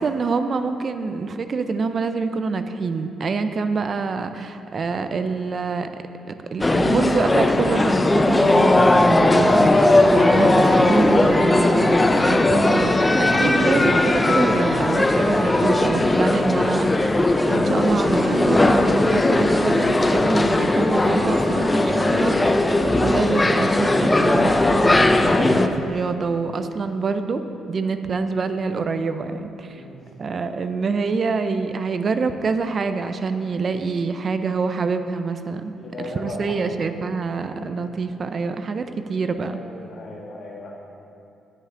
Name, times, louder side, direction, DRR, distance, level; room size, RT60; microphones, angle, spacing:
voice 1, 0.0-5.9 6.5-17.2 17.5-22.7 23.0-27.4 27.7-29.8 30.2-35.7 36.0-39.6, right 4 dB, 45° right, 9 dB, 0.5 m, -26 dB
sound 1, 6.6-25.7, left 2 dB, 15° left, 0.5 m, -18 dB
sound 2, 9.9-25.4, right 1 dB, 5° right, 1.3 m, -34 dB
voice 2, 35.8-36.7 37.6-37.8 39.5-40.7, left 2 dB, 55° left, -2 dB, 1.8 m, -37 dB
16.0 x 5.6 x 3.7 m, 2.7 s
cardioid pair, 90°, 0 cm